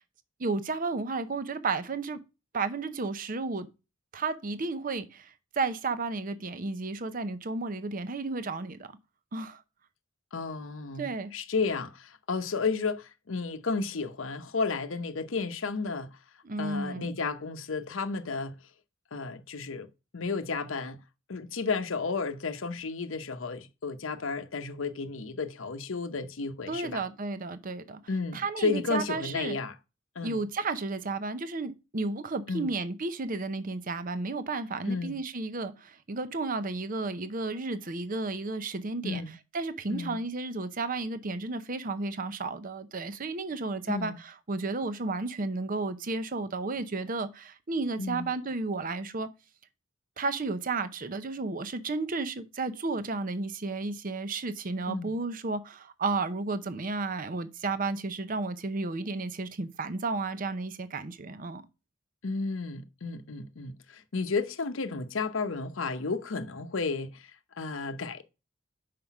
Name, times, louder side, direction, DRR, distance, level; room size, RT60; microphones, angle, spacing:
voice 1, 0.4-2.2 2.5-3.7 4.1-8.8 9.3-9.6 11.0-11.3 16.4-17.1 26.7-28.0 28.3-29.6 30.2-39.2 39.5-49.3 50.2-61.6, right 3 dB, 45° right, 0.7 m, -33 dB
voice 2, 10.3-16.2 16.6-18.6 19.1-19.9 20.1-21.0 21.3-27.0 28.1-29.8 30.2-30.4 32.5-32.7 34.9-35.2 39.0-39.4 39.9-40.2 43.9-44.2 48.0-48.3 54.9-55.2 62.2-68.2, left 4 dB, 75° left, 0.8 m, -32 dB
5.8 x 5.0 x 5.8 m
head